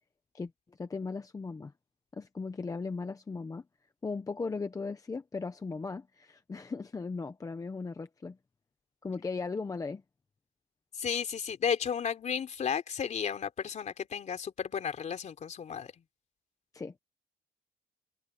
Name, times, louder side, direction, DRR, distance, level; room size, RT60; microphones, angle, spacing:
voice 1, 0.3-1.7 2.1-3.6 4.0-8.4 9.0-10.0 16.7-16.9, left 4 dB, 20° left, 0.8 m, -37 dB
voice 2, 10.9-16.0, left 7 dB, 45° left, 3.6 m, -33 dB
cardioid pair, 160°, 17 cm